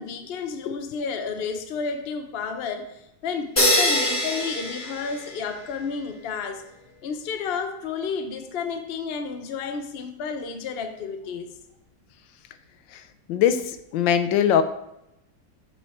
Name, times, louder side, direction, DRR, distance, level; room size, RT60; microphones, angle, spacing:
voice 1, 0.0-6.6 7.0-11.6, left 5 dB, 55° left, 7 dB, 0.7 m, -31 dB
sound 1, 3.6-5.7, left 1 dB, 20° left, 1.5 m, -24 dB
voice 2, 13.3-14.6, left 9 dB, 90° left, 10 dB, 1.4 m, -21 dB
7.3 x 5.7 x 4.3 m, 0.84 s
omnidirectional pair, 2.0 m